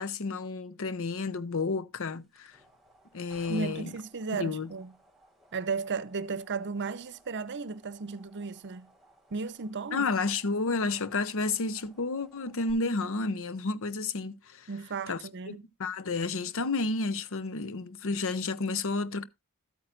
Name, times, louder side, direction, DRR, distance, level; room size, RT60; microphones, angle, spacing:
voice 1, 0.0-2.6 3.1-3.9 4.3-4.7 9.9-14.7 15.1-15.2 15.5-19.2, left 3 dB, 65° left, 0.8 m, -31 dB
sound 1, 2.1-12.7, right 1 dB, ahead, 3.6 m, -60 dB
voice 2, 3.5-4.9 5.5-8.9 9.3-10.1 14.7-15.6, right 4 dB, 55° right, 0.7 m, -35 dB
13.0 x 8.8 x 2.5 m
head